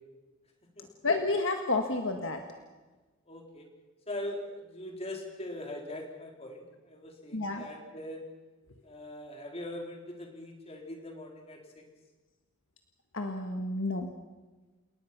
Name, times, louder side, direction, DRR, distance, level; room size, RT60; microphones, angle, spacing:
voice 1, 1.0-2.4 7.3-7.6 13.1-14.1, left 2 dB, 60° left, 4 dB, 1.7 m, -30 dB
voice 2, 3.3-3.7 4.1-8.2 8.8-11.8, left 1 dB, 30° left, 2 dB, 3.9 m, -41 dB
29.0 x 19.0 x 6.0 m, 1.2 s
head